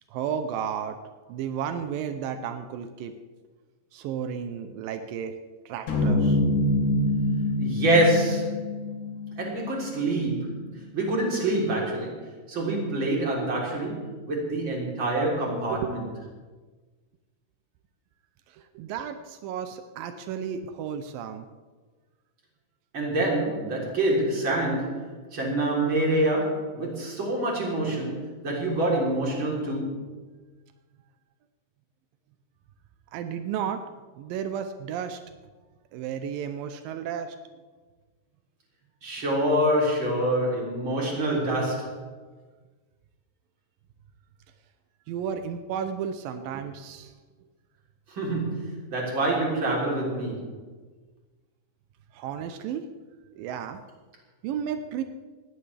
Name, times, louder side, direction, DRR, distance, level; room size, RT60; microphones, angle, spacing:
voice 1, 0.1-1.0 1.3-3.1 3.9-5.3 5.7-6.4 15.7-15.9 18.8-21.5 33.1-33.8 34.2-35.2 35.9-37.4 45.1-47.1 52.1-52.8 53.4-53.8 54.4-55.0, right 8 dB, 85° right, 8 dB, 2.5 m, -33 dB
sound 1, 5.9-10.2, left 1 dB, 70° left, 3.5 m, -26 dB
voice 2, 7.6-8.7 9.4-16.1 22.9-30.0 39.0-42.0 48.1-50.6, right 1 dB, 35° right, -3 dB, 4.2 m, -26 dB
19.5 x 15.5 x 3.4 m, 1.3 s
omnidirectional pair, 3.9 m